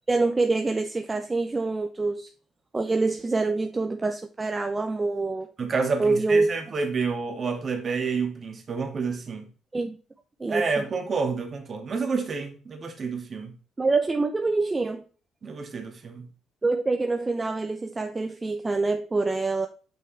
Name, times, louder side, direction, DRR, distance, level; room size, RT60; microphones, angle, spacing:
voice 1, 0.1-2.3 2.7-5.5 6.0-6.5 9.7-10.0 10.4-10.6 13.8-15.0 16.6-19.7, right 3 dB, 25° right, 0.7 m, -25 dB
voice 2, 5.6-9.5 10.5-13.5 15.4-16.3, right 4 dB, 45° right, 2.1 m, -29 dB
6.4 x 5.5 x 3.3 m
supercardioid pair, 65°, 0 cm